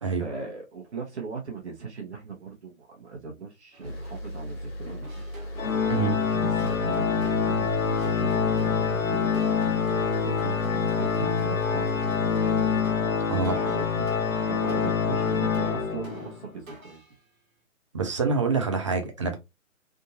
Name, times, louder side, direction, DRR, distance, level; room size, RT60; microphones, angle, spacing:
voice 1, 0.0-5.2 6.1-7.7 7.9-17.0, right 5 dB, 55° right, 1.2 m, -39 dB
sound 1, 3.7-4.4 4.8-17.1, right 1 dB, 80° right, 1.4 m, -46 dB
sound 2, 3.8-12.8, equal, 50° left, 1.6 m, -37 dB
Organ, 5.6-16.4, left 6 dB, 80° left, 0.8 m, -26 dB
voice 2, 13.3-13.6 17.9-19.4, right 4 dB, 25° right, 0.5 m, -26 dB
3.6 x 2.6 x 2.7 m
figure-of-eight pair, 145°, 40 cm